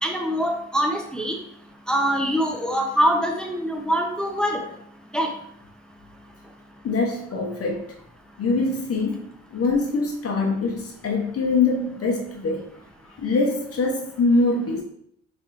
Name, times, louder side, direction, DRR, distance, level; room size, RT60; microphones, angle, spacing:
voice 1, 0.0-1.4 1.9-4.6 5.1-5.3, equal, 5° left, 2 dB, 0.6 m, -23 dB
voice 2, 6.8-7.8 8.4-9.2 9.5-12.6 13.2-14.8, left 3 dB, 50° left, 1 dB, 0.8 m, -23 dB
5.4 x 3.4 x 2.5 m, 0.69 s
cardioid pair, 90°, 30 cm